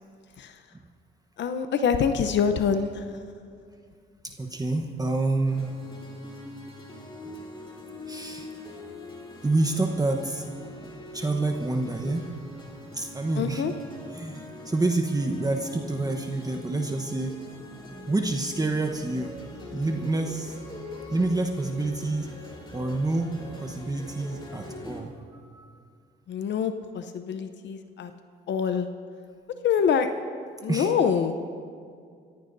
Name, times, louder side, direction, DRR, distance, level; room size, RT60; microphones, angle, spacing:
voice 1, 1.4-3.2 13.4-13.7 26.3-28.1 28.5-28.9 29.6-30.2 30.6-31.4, left 7 dB, 65° left, 8 dB, 0.8 m, -25 dB
voice 2, 4.2-5.7 8.1-8.5 9.4-10.4 11.1-12.3 12.9-13.6 14.1-17.3 18.1-19.3 19.7-20.6 21.1-22.3 22.7-25.8 30.7-30.9, right 2 dB, 20° right, 3 dB, 1.0 m, -28 dB
sound 1, 5.4-25.0, left 1 dB, 25° left, 3.1 m, -43 dB
26.0 x 15.0 x 2.7 m, 2.2 s
cardioid pair, 90°, 20 cm